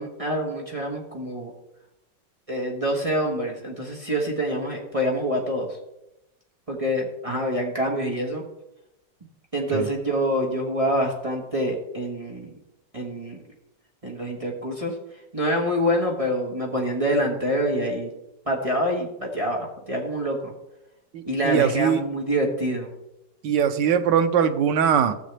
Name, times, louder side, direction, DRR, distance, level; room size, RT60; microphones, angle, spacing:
voice 1, 0.0-1.5 2.5-5.8 6.7-8.4 9.5-12.5 12.9-13.4 14.0-14.9 15.3-18.1 18.4-20.5 21.2-22.9, equal, 20° right, -2 dB, 1.2 m, -26 dB
voice 2, 21.1-22.0 23.4-25.1, right 8 dB, 85° right, 8 dB, 1.4 m, -21 dB
13.0 x 7.4 x 3.4 m, 0.89 s
omnidirectional pair, 1.9 m